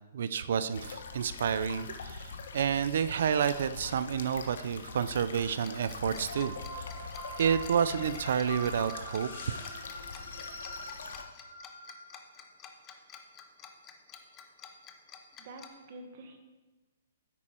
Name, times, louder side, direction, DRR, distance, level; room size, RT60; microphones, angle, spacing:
voice 1, 0.1-6.9 7.4-9.3, right 7 dB, 50° right, 14 dB, 0.4 m, -30 dB
sound 1, 0.7-11.2, left 5 dB, 65° left, 1.1 m, -44 dB
Tick-tock, 5.6-15.7, left 8 dB, 15° left, 0.6 m, -50 dB
sound 2, 6.3-12.4, left 1 dB, 80° left, 3.6 m, -43 dB
voice 2, 15.4-16.4, right 2 dB, 30° right, 4 dB, 1.2 m, -47 dB
9.9 x 8.6 x 4.4 m, 1.2 s
hypercardioid pair, 180°, 0 cm